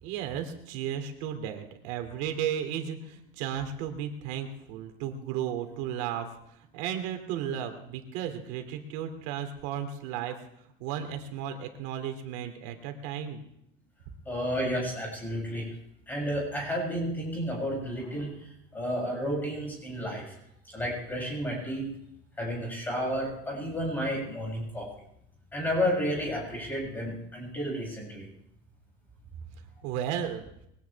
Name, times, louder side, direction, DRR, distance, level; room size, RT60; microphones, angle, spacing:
voice 1, 0.0-10.4 10.8-13.4 29.8-30.4, right 9 dB, 65° right, 6 dB, 2.8 m, -34 dB
voice 2, 14.2-15.7 16.1-20.3 20.7-21.9 22.4-24.9 25.5-28.3, equal, 10° left, -2 dB, 7.4 m, -31 dB
22.5 x 17.5 x 3.5 m, 0.75 s
cardioid pair, 170°, 17 cm